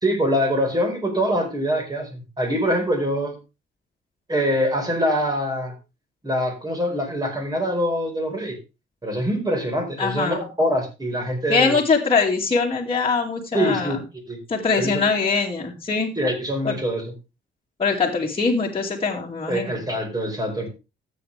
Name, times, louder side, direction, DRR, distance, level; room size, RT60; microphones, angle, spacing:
voice 1, 0.0-3.3 4.3-5.7 6.2-8.6 9.0-11.8 13.5-14.0 14.3-14.4 14.8-15.1 16.2-17.0 19.5-20.7, equal, 20° right, 3 dB, 4.8 m, -24 dB
voice 2, 10.0-10.5 11.5-14.0 14.5-16.2 16.6-16.8 17.8-19.8, left 4 dB, 25° left, -3 dB, 2.5 m, -22 dB
13.5 x 8.3 x 3.4 m, 0.27 s
cardioid pair, 90°, 20 cm